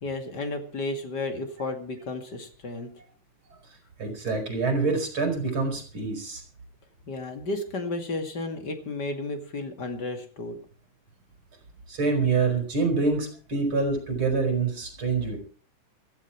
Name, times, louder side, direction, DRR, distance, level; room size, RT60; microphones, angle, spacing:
voice 1, 0.0-2.9 7.1-10.6, left 2 dB, 35° left, 6 dB, 2.4 m, -33 dB
voice 2, 4.0-6.4 11.9-15.4, right 4 dB, 35° right, 5 dB, 5.3 m, -26 dB
15.5 x 14.5 x 4.6 m, 0.41 s
omnidirectional pair, 3.8 m